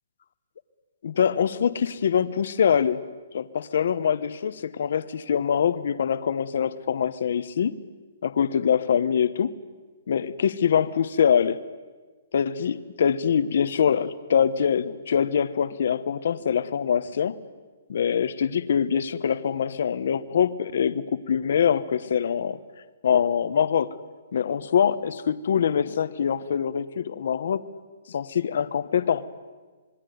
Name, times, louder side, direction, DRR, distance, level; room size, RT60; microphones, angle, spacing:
voice 1, 1.0-3.0 3.3-7.7 8.2-9.5 10.1-11.6 12.3-17.3 17.9-22.6 23.0-23.9 24.3-27.6 28.1-29.3, left 7 dB, 55° left, 14 dB, 1.2 m, -24 dB
27.0 x 21.5 x 9.5 m, 1.4 s
hypercardioid pair, 180°, 0 cm